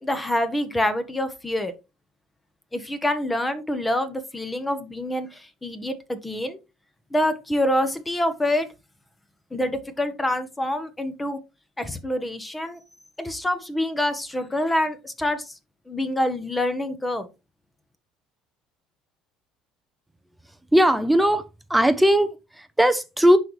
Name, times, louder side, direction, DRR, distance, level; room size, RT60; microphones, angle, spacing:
voice 1, 0.0-1.7 2.7-6.6 7.1-8.7 9.5-11.4 11.8-12.8 13.2-15.5 15.9-17.3, left 1 dB, 10° left, 1.0 m, -26 dB
voice 2, 20.7-21.4 21.7-23.4, equal, 5° right, 0.6 m, -18 dB
10.5 x 4.0 x 3.2 m
cardioid pair, 105°, 0 cm